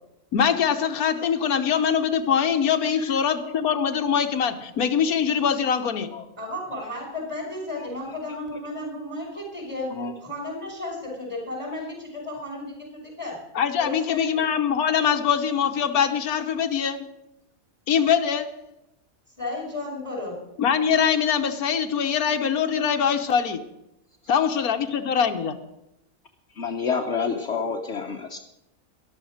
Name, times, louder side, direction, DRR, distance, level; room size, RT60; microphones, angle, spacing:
voice 1, 0.3-6.1 13.5-17.1 17.9-18.7 20.6-23.7 24.3-25.6, left 7 dB, 90° left, 7 dB, 1.5 m, -23 dB
voice 2, 6.4-9.9 10.2-13.4 13.8-14.4 19.4-20.4, left 2 dB, 20° right, -1 dB, 5.7 m, -33 dB
voice 3, 26.6-28.4, left 5 dB, 55° left, 4 dB, 1.1 m, -28 dB
13.5 x 11.5 x 6.4 m, 0.88 s
omnidirectional pair, 1.5 m